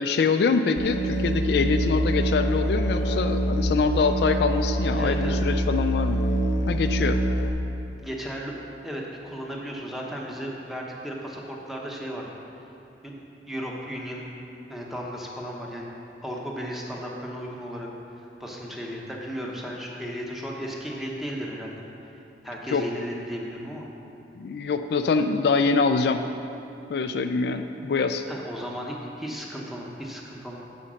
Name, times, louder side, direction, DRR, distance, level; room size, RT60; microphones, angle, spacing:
voice 1, 0.0-6.2 6.7-7.2 22.7-22.8 24.4-26.2 26.9-28.2, left 4 dB, 60° left, 7 dB, 0.3 m, -24 dB
Musical instrument, 0.8-7.5, right 1 dB, 85° left, 0.7 m, -25 dB
voice 2, 5.0-5.4 8.0-8.5 8.8-12.3 13.0-13.1 13.5-14.2 14.7-15.9 16.2-17.9 18.2-21.8 22.4-23.9 28.3-30.7, equal, ahead, -2 dB, 1.0 m, -35 dB
9.9 x 5.2 x 6.3 m, 2.8 s
head